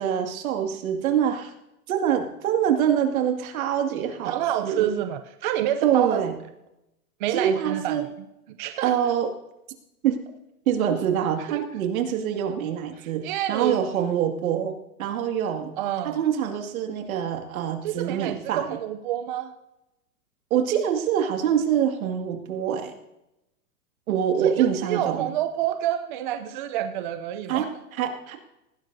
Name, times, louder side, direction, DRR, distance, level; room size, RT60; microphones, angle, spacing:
voice 1, 0.0-1.5 1.9-4.3 4.6-4.9 5.8-6.3 7.3-8.1 8.8-9.3 10.0-10.2 10.7-14.7 15.0-15.7 16.0-18.8 20.5-22.9 24.1-25.3 27.5-28.4, right 9 dB, 60° right, 4 dB, 2.2 m, -25 dB
voice 2, 4.2-6.3 7.2-8.1 8.6-9.1 11.5-11.7 13.0-13.8 15.8-16.2 17.8-19.5 24.4-27.7, right 11 dB, 30° right, 9 dB, 0.5 m, -28 dB
19.5 x 16.0 x 2.7 m, 0.89 s
hypercardioid pair, 150°, 46 cm